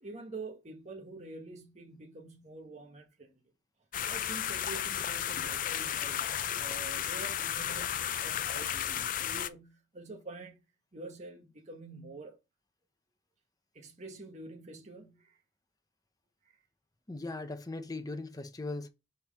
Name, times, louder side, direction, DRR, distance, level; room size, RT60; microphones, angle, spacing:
voice 1, 0.0-3.4 4.0-10.6 10.9-12.4 13.7-15.4 16.4-16.5, right 3 dB, 40° right, 1.5 m, -47 dB
sound 1, 3.9-9.5, left 10 dB, 50° left, 0.4 m, -33 dB
voice 2, 17.1-18.9, left 2 dB, 20° left, 0.8 m, -39 dB
5.5 x 4.5 x 5.4 m
head